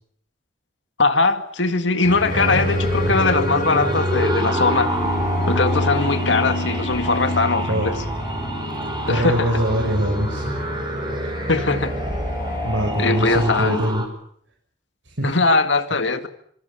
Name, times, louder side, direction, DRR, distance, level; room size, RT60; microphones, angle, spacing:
voice 1, 1.0-4.9 5.5-7.9 9.1-9.5 11.5-11.9 13.0-13.8 15.2-16.3, left 3 dB, 75° left, 8 dB, 2.1 m, -20 dB
sound 1, 2.0-13.6, left 1 dB, 50° left, 4.9 m, -28 dB
sound 2, 2.3-14.1, right 1 dB, 25° right, 5.5 m, -27 dB
voice 2, 9.1-10.4 11.2-11.3 12.6-14.0 15.0-15.3, equal, 80° right, 1 dB, 6.5 m, -23 dB
26.0 x 25.5 x 7.0 m, 0.66 s
head